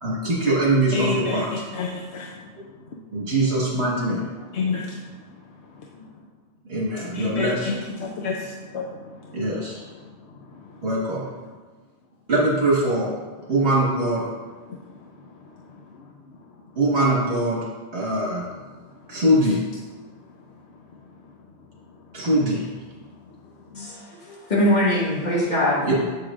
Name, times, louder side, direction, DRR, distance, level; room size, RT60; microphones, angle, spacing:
voice 1, 0.0-1.5 3.1-4.4 6.7-7.7 9.3-9.8 10.8-11.2 12.3-13.1 13.5-14.2 16.8-17.6 17.9-18.4 19.1-19.6 22.1-22.7 25.8-25.9, right 1 dB, 70° right, -5 dB, 1.8 m, -22 dB
voice 2, 0.9-3.0 4.5-6.1 7.0-9.5 9.9-10.9 14.6-16.1 18.4-18.5 23.7-23.9, left 4 dB, 80° left, 0 dB, 1.0 m, -32 dB
voice 3, 23.7-25.9, left 1 dB, 40° left, -6 dB, 2.0 m, -22 dB
7.8 x 7.7 x 2.5 m, 1.3 s
omnidirectional pair, 1.1 m